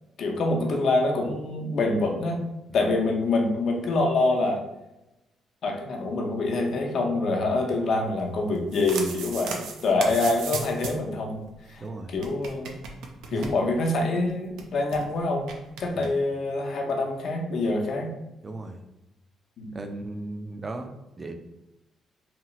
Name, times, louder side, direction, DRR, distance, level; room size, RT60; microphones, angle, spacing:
voice 1, 0.2-2.4 2.7-4.6 5.6-11.4 11.7-12.8 13.3-15.5 15.8-18.1 19.6-19.7, left 2 dB, 65° left, 1 dB, 0.6 m, -25 dB
sound 1, 8.5-11.1 11.4-11.5 11.7-11.8 12.1-14.0 14.3-14.4 14.6-15.0 15.5-16.1, right 4 dB, 90° right, 0.4 m, -36 dB
voice 2, 11.8-12.2 13.3-13.5 15.9-16.1 18.4-18.8 19.7-21.3, right 2 dB, 30° right, 6 dB, 0.4 m, -36 dB
2.9 x 2.3 x 2.9 m, 0.94 s
cardioid pair, 90°, 0 cm